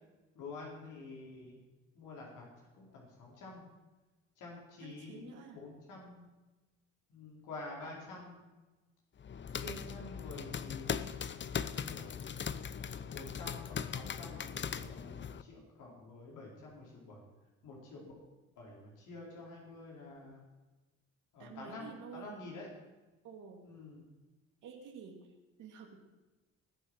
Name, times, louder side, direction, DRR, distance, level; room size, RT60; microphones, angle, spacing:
voice 1, 0.3-1.6 1.9-3.7 4.4-6.2 7.1-8.4 9.5-11.1 11.7-12.1 13.1-17.2 17.6-18.1 18.6-20.4 21.3-22.7 23.6-24.1, left 3 dB, 85° left, -3 dB, 4.7 m, -48 dB
voice 2, 4.8-5.6 21.4-22.4 23.2-23.6 24.6-26.0, right 7 dB, 85° right, 2 dB, 2.5 m, -50 dB
sound 1, 9.2-15.4, left 7 dB, 40° left, 0.7 m, -39 dB
20.0 x 7.0 x 6.3 m, 1.2 s
cardioid pair, 90°, 30 cm